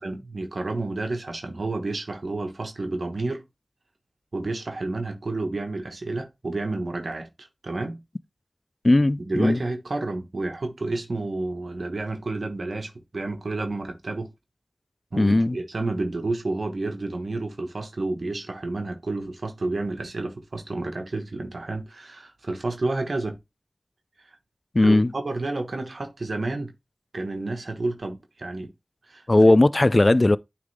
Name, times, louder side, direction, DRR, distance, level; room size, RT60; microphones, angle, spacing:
voice 1, 0.0-3.4 4.3-8.0 9.2-14.3 15.1-23.4 24.8-26.7 27.1-28.7 29.1-29.6, right 2 dB, 75° right, 1.2 m, -30 dB
voice 2, 8.8-9.6 15.2-15.6 24.7-25.1 29.3-30.4, left 2 dB, 40° left, 0.3 m, -17 dB
9.6 x 3.4 x 3.3 m
wide cardioid pair, 55°, 0 cm